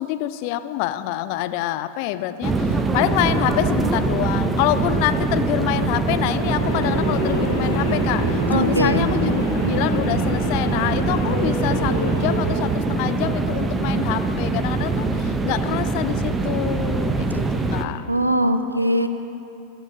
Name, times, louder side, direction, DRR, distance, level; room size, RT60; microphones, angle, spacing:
voice 1, 0.0-18.0, left 13 dB, 45° left, 11 dB, 0.5 m, -26 dB
sound 1, 2.4-17.8, right 3 dB, 15° right, 0.8 m, -23 dB
sound 2, 6.6-12.5, left 2 dB, 65° left, 2.9 m, -28 dB
voice 2, 8.5-9.1 18.1-19.1, right 1 dB, 85° right, 10 dB, 0.6 m, -21 dB
22.5 x 12.5 x 2.8 m, 2.8 s
figure-of-eight pair, 90°, 0 cm